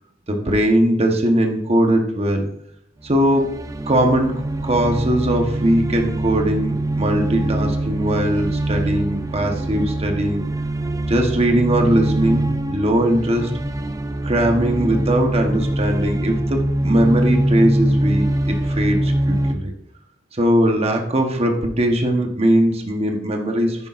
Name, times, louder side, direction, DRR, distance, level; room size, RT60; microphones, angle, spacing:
voice 1, 0.3-2.5 3.0-3.5 3.9-10.4 11.1-13.5 14.2-19.7 20.3-23.9, right 1 dB, 35° right, 3 dB, 1.1 m, -20 dB
sound 1, 3.0-19.5, right 1 dB, 15° right, 0.5 m, -23 dB
9.9 x 9.7 x 2.5 m, 0.76 s
head